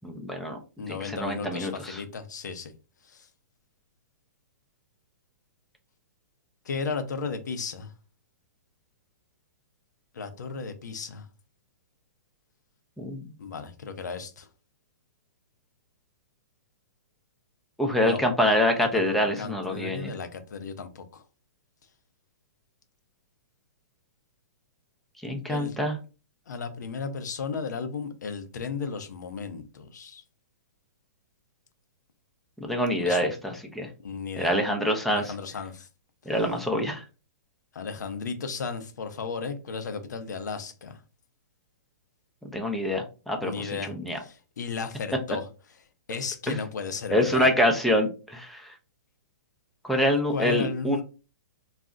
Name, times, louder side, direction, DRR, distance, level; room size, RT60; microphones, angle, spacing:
voice 1, 0.0-0.6 0.9-2.0 13.0-13.3 17.8-20.1 25.2-26.0 32.6-33.9 34.4-35.3 36.3-37.0 42.4-44.2 46.5-46.6 47.1-48.7 49.8-51.0, left 1 dB, ahead, 0.4 m, -26 dB
voice 2, 0.8-2.7 3.1-3.3 6.7-7.9 10.1-11.3 13.4-14.5 18.0-18.2 18.8-21.2 25.5-25.8 26.5-30.2 33.0-33.3 34.0-34.6 35.1-35.9 37.7-41.0 43.4-45.5 46.1-47.5 50.3-51.0, left 5 dB, 80° left, 0.6 m, -35 dB
2.4 x 2.0 x 3.6 m
hypercardioid pair, 150°, 10 cm